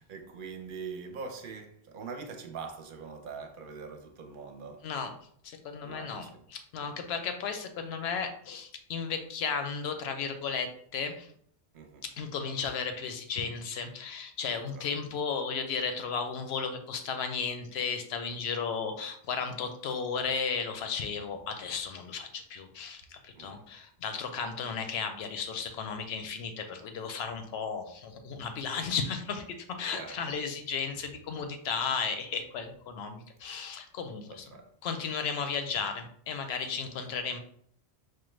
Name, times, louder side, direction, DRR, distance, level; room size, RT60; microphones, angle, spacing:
voice 1, 0.0-4.8 5.8-6.4 6.8-7.2 11.7-12.1 14.5-14.9 23.3-23.7 29.8-30.4 34.3-34.7 36.8-36.9, right 5 dB, 60° right, 0.7 m, -43 dB
voice 2, 5.4-11.3 12.0-34.5 34.8-37.4, left 5 dB, 75° left, 0.8 m, -34 dB
4.6 x 2.2 x 3.1 m
omnidirectional pair, 1.1 m